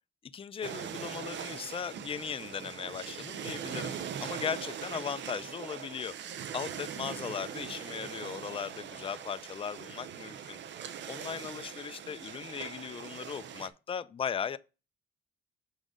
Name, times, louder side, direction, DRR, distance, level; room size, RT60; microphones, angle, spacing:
voice 1, 0.2-6.1 6.5-10.6 11.1-14.6, left 7 dB, 30° left, 0.4 m, -38 dB
sound 1, 0.6-13.7, right 8 dB, 65° right, 0.8 m, -41 dB
6.1 x 4.0 x 5.1 m
cardioid pair, 90°, 20 cm